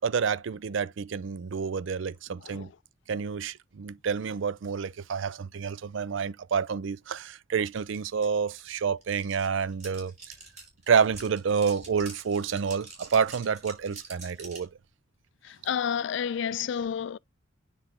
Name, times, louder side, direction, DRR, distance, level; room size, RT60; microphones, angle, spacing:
voice 1, 0.0-2.7 3.1-10.1 10.9-14.7, right 6 dB, 65° right, 0.4 m, -28 dB
voice 2, 2.4-2.7 15.4-17.2, left 8 dB, 60° left, 0.3 m, -30 dB
sound 1, 7.9-8.0 8.2-14.7, right 3 dB, 35° right, 4.3 m, -46 dB
9.9 x 3.4 x 3.6 m
head